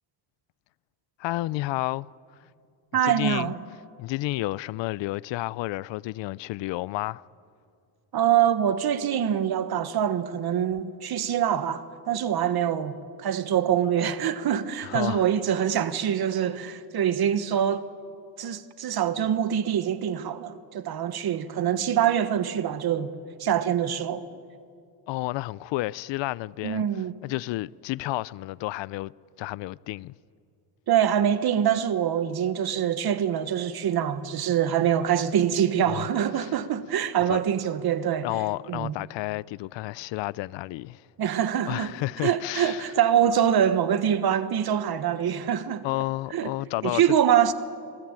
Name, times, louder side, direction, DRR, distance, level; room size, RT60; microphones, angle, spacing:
voice 1, 1.2-2.1 3.0-3.5 4.0-7.2 14.8-15.2 25.1-26.8 27.2-29.1 29.4-30.1 35.9-36.1 36.4-36.5 37.3-37.4 38.2-41.0 41.7-42.9 45.8-47.0, left 18 dB, 80° left, 0.6 m, -31 dB
voice 2, 2.9-3.6 8.1-17.8 18.4-23.1 23.4-24.2 26.6-27.1 30.9-38.3 38.7-39.0 41.2-41.9 42.2-45.8 46.3-46.5 46.8-47.5, right 9 dB, 55° right, 1.4 m, -24 dB
27.5 x 18.5 x 8.9 m
cardioid pair, 125°, 44 cm